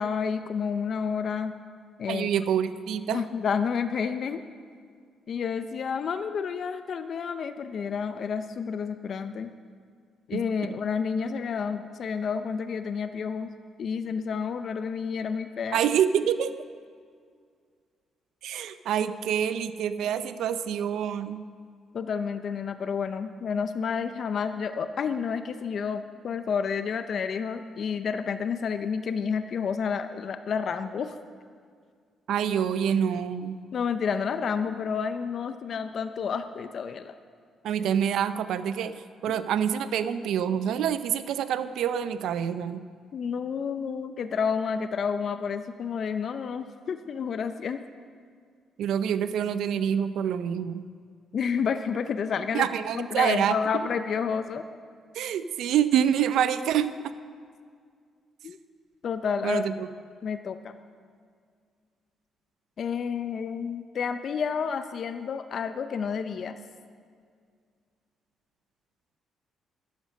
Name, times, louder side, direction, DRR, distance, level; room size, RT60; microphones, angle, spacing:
voice 1, 0.0-1.5 2.0-2.3 3.1-4.4 5.3-9.5 10.3-13.5 13.8-15.8 21.9-31.1 33.7-37.1 43.1-47.8 51.3-52.7 52.9-54.6 58.4-58.6 59.0-59.7 60.2-60.8 62.8-66.6, left 6 dB, 55° left, 10 dB, 0.6 m, -30 dB
voice 2, 2.1-3.3 10.3-10.7 15.7-16.5 18.4-21.4 32.3-33.6 37.6-38.9 39.2-42.8 48.8-50.8 52.5-53.6 55.1-57.1 59.4-59.9, right 9 dB, 80° right, 12 dB, 0.6 m, -26 dB
12.5 x 10.5 x 6.6 m, 2.1 s
cardioid pair, 90°, 0 cm